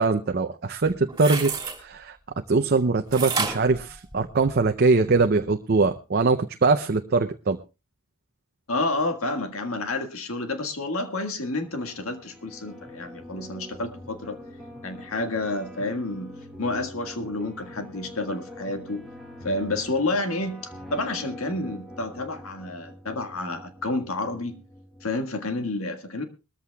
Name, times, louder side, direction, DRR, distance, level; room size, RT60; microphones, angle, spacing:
voice 1, 0.0-2.2 2.5-7.6, right 3 dB, 45° right, 7 dB, 0.6 m, -22 dB
sound 1, 0.8-1.8 3.1-4.7 5.1-5.2, right 4 dB, 20° right, 3.0 m, -30 dB
voice 2, 8.7-14.4 14.8-16.3 16.6-19.0 19.4-24.6 25.0-26.2, left 2 dB, 80° left, 6 dB, 1.7 m, -29 dB
sound 2, 11.6-25.1, left 1 dB, ahead, 1.9 m, -44 dB
21.5 x 14.0 x 2.3 m, 0.28 s
head